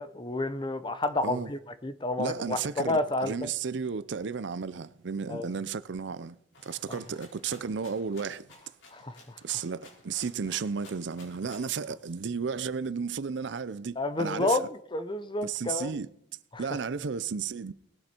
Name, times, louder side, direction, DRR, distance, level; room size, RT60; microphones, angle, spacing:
voice 1, 0.0-3.5 5.3-5.5 6.9-7.0 8.9-9.4 14.0-14.6 14.9-15.9 16.5-16.6, left 2 dB, 25° left, 0.8 m, -30 dB
voice 2, 2.2-6.4 6.6-8.5 9.4-14.6 15.4-16.1 16.6-17.7, right 5 dB, 70° right, 0.5 m, -33 dB
Rattle (instrument), 6.5-11.8, left 2 dB, 85° left, 5.1 m, -54 dB
19.5 x 9.6 x 4.4 m
head